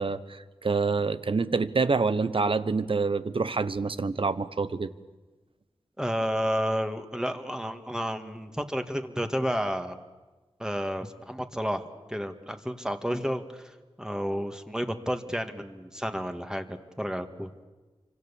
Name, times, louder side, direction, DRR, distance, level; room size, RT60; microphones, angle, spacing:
voice 1, 0.0-4.9, right 4 dB, 55° right, 13 dB, 1.1 m, -27 dB
voice 2, 6.0-10.0 10.6-17.6, equal, 5° right, 6 dB, 2.0 m, -31 dB
27.5 x 25.5 x 7.3 m, 1.2 s
wide cardioid pair, 65°, 11 cm